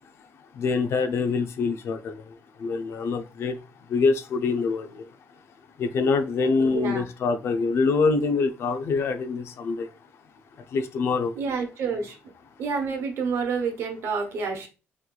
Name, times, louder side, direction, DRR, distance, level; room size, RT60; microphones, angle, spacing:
voice 1, 0.5-3.6 3.9-5.1 5.8-9.9 10.7-11.4, left 4 dB, 65° left, 0.4 m, -25 dB
voice 2, 6.6-7.1 11.3-12.2 12.6-14.7, right 5 dB, 75° right, 1.0 m, -28 dB
3.8 x 3.0 x 2.3 m
cardioid pair, 145°, 5 cm